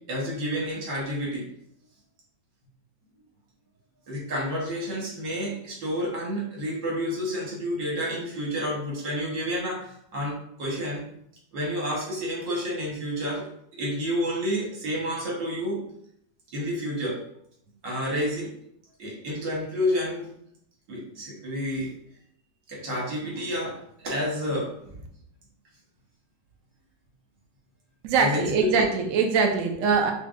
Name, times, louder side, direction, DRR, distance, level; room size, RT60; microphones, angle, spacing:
voice 1, 0.1-1.4 4.1-11.0 11.5-15.8 16.5-17.2 17.8-18.5 19.0-20.3 20.9-21.9 22.7-24.8 28.2-28.9, equal, 80° right, -3 dB, 2.0 m, -29 dB
voice 2, 28.0-30.1, right 5 dB, 65° right, 3 dB, 0.8 m, -22 dB
6.1 x 2.4 x 2.5 m, 0.71 s
omnidirectional pair, 1.9 m